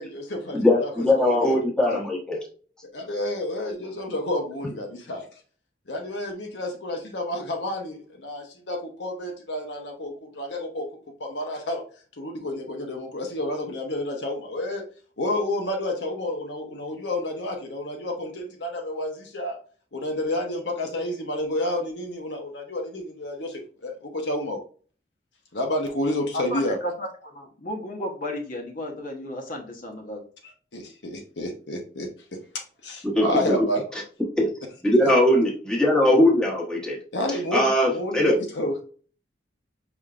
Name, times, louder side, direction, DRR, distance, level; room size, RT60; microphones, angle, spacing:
voice 1, 0.0-0.9 1.2-1.6 1.9-2.0 2.9-5.3 5.9-10.9 11.2-11.8 12.2-14.9 15.2-19.6 19.9-24.6 25.5-26.8 30.4-32.4 32.8-33.8 35.0-35.1 37.1-38.8, left 1 dB, 75° left, 2 dB, 1.0 m, -30 dB
voice 2, 0.5-2.4 33.0-33.7 34.4-34.5 34.8-37.0 37.5-38.3, left 1 dB, 5° left, -3 dB, 1.2 m, -20 dB
voice 3, 26.3-30.2, left 1 dB, 50° left, 2 dB, 1.0 m, -33 dB
5.1 x 3.5 x 2.5 m, 0.41 s
head